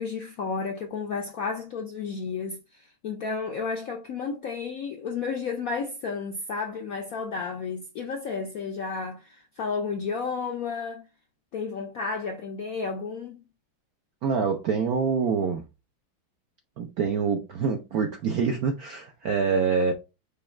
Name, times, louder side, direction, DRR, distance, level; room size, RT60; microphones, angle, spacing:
voice 1, 0.0-11.1 11.5-13.4, left 5 dB, 70° left, 0.8 m, -32 dB
voice 2, 14.2-15.6 16.8-19.9, right 5 dB, 70° right, 0.8 m, -25 dB
5.3 x 2.3 x 4.2 m
omnidirectional pair, 2.3 m